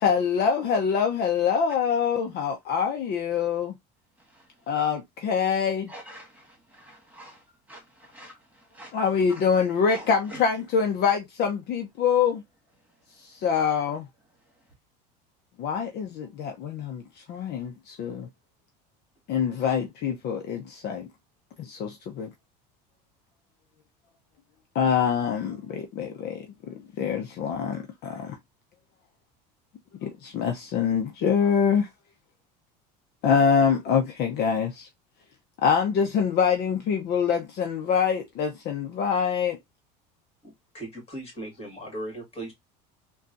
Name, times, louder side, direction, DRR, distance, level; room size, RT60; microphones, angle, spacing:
voice 1, 0.0-3.7 4.7-5.9 8.9-12.4 13.4-14.0 15.6-17.0 17.3-18.3 19.3-21.1 21.6-22.3 24.7-26.5 27.0-28.4 30.0-31.9 33.2-34.9 35.6-39.6, left 7 dB, 50° left, 0.7 m, -25 dB
voice 2, 5.9-7.4 7.7-8.3 8.7-8.9 9.9-10.4, right 1 dB, 5° right, 2.0 m, -45 dB
voice 3, 40.4-42.5, right 1 dB, 30° left, 2.1 m, -38 dB
3.6 x 2.3 x 2.5 m
supercardioid pair, 100°, 21 cm